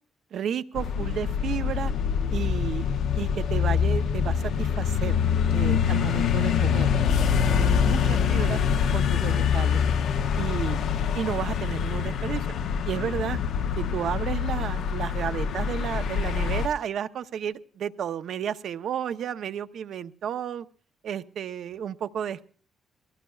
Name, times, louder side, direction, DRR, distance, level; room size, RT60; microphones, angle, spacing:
voice 1, 0.3-1.9 2.3-2.9 3.1-5.2 5.5-6.9 7.5-8.6 8.9-9.8 10.4-12.5 12.8-13.4 13.8-20.7 21.0-22.5, right 9 dB, 65° right, 11 dB, 0.7 m, -32 dB
sound 1, 0.8-16.7, left 7 dB, 75° left, 0.6 m, -25 dB
21.5 x 16.5 x 2.3 m, 0.43 s
cardioid pair, 90°, 0 cm